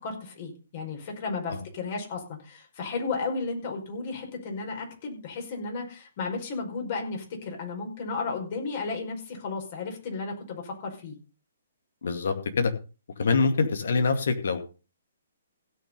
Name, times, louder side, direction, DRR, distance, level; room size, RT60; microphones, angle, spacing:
voice 1, 0.0-11.2, left 4 dB, 45° left, 2 dB, 5.1 m, -34 dB
voice 2, 12.0-12.7 13.2-14.7, left 4 dB, 65° left, 7 dB, 2.4 m, -25 dB
16.5 x 6.4 x 5.5 m, 0.34 s
figure-of-eight pair, 130°, 0 cm